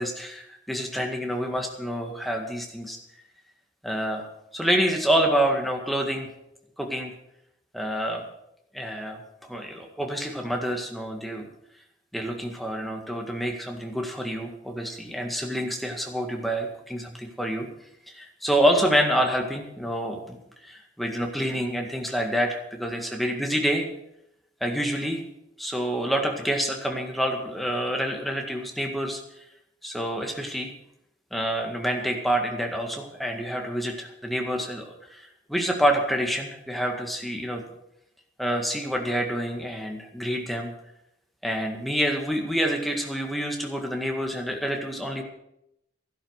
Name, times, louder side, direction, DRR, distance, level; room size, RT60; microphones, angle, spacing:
voice 1, 0.0-3.0 3.8-4.3 4.5-6.3 6.8-7.1 7.7-8.2 8.7-9.2 9.5-11.5 12.1-17.7 18.1-20.4 20.6-23.8 24.6-25.2 25.6-29.2 29.8-30.7 31.3-37.6 38.4-40.7 41.4-45.2, equal, ahead, 2 dB, 1.9 m, -27 dB
13.0 x 11.5 x 6.5 m, 0.80 s
head